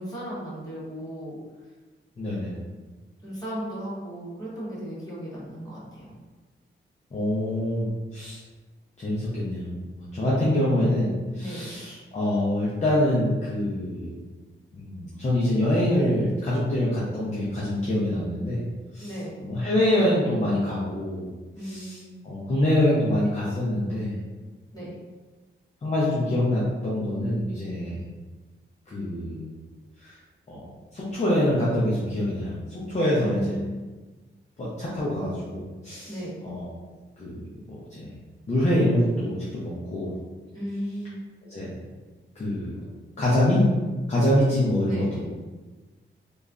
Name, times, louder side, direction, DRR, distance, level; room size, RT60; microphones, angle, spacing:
voice 1, 0.0-1.4 3.2-6.1 11.4-11.7 19.0-19.4 21.5-22.1 24.7-25.0 33.2-33.7 36.1-36.4 40.5-41.2 44.8-45.2, equal, 15° left, -8 dB, 1.0 m, -35 dB
voice 2, 2.2-2.5 7.1-8.4 9.0-9.7 10.0-11.1 11.3-14.1 14.7-18.6 18.9-19.1 19.4-21.2 21.6-22.0 22.2-24.2 25.8-28.0 28.9-29.5 30.0-30.1 30.5-30.7 30.9-32.5 32.9-33.5 34.6-36.1 36.4-36.7 37.2-37.3 37.7-38.1 38.5-40.1 41.5-41.7 42.4-42.7 43.2-43.6 44.1-45.2, left 1 dB, 35° left, -7 dB, 0.5 m, -25 dB
3.0 x 2.3 x 2.4 m, 1.3 s
wide cardioid pair, 160°, 21 cm